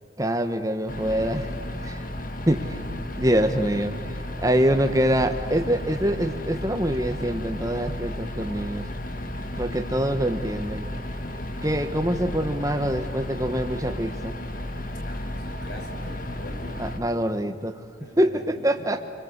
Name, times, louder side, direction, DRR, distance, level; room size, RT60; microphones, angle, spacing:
voice 1, 0.2-1.5 1.8-2.0 2.5-2.6 3.2-3.9 4.4-8.8 9.6-10.9 11.6-14.3 16.8-17.7 18.2-19.0, equal, 15° right, 7 dB, 1.5 m, -24 dB
sound 1, 0.9-17.0, left 1 dB, 45° left, 1.8 m, -33 dB
voice 2, 2.6-3.2 15.0-16.9 18.0-19.0, equal, 60° left, 3 dB, 5.6 m, -42 dB
27.5 x 23.5 x 8.3 m, 2.4 s
head